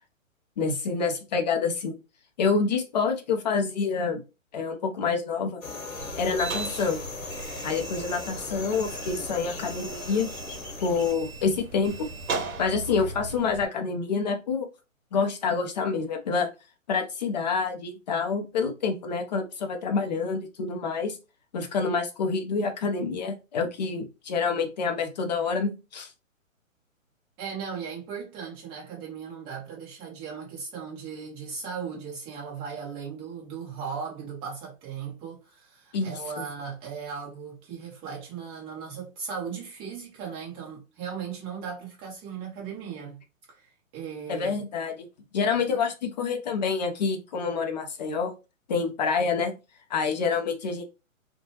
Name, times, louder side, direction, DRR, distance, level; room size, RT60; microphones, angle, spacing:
voice 1, 0.6-1.9 2.4-4.2 4.5-5.6 6.2-7.0 7.6-10.3 10.8-12.1 12.6-14.7 15.1-16.5 16.9-21.2 21.5-26.1 35.9-36.1 44.3-45.1 45.3-48.3 48.7-49.5 49.9-50.8, left 5 dB, 35° left, 0.5 m, -27 dB
sound 1, 5.6-11.1, left 4 dB, 85° left, 1.0 m, -38 dB
sound 2, 6.0-13.7, right 3 dB, 75° right, 0.7 m, -37 dB
voice 2, 27.4-43.2 43.5-44.5 45.5-45.6, right 6 dB, 10° right, 0.7 m, -37 dB
2.7 x 2.2 x 2.7 m
hypercardioid pair, 140°, 41 cm